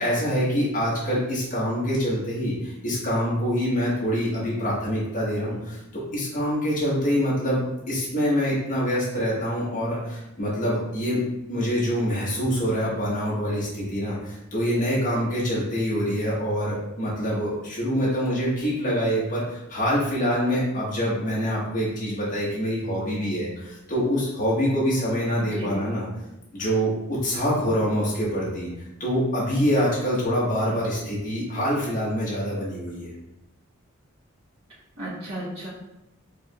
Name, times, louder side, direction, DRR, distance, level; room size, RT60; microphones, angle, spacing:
voice 1, 0.0-5.8 6.1-7.6 7.9-11.2 11.5-26.1 26.5-28.7 29.0-33.1, equal, 35° left, -7 dB, 1.5 m, -25 dB
voice 2, 25.4-25.8 35.0-35.7, right 1 dB, 75° right, -11 dB, 1.2 m, -34 dB
4.8 x 3.2 x 2.4 m, 0.91 s
head